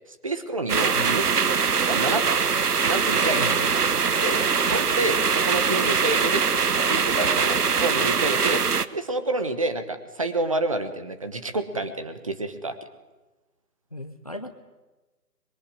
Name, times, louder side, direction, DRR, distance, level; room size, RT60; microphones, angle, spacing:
voice 1, 0.1-1.6 1.9-2.2 2.8-3.7 4.2-4.4 4.7-6.6 6.9-8.6 8.9-12.8, right 2 dB, 20° right, 10 dB, 1.1 m, -28 dB
sound 1, 0.7-8.9, right 5 dB, 65° right, 1.4 m, -22 dB
voice 2, 3.3-3.7 13.9-14.5, left 1 dB, 25° left, 9 dB, 0.8 m, -35 dB
26.0 x 22.5 x 9.8 m, 1.1 s
figure-of-eight pair, 165°, 49 cm